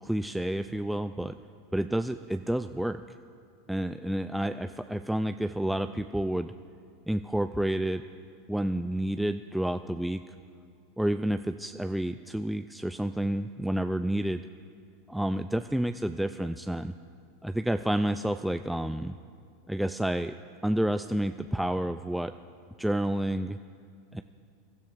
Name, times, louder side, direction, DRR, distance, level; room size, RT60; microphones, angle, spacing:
voice 1, 0.0-1.4 1.7-3.0 3.7-6.5 7.1-8.0 8.5-10.3 11.0-14.4 15.1-16.9 17.4-19.1 19.7-20.4 20.6-22.3 22.8-23.6 24.1-24.2, right 1 dB, 5° right, 9 dB, 0.3 m, -29 dB
23.0 x 13.0 x 2.6 m, 2.4 s
hypercardioid pair, 95°, 0 cm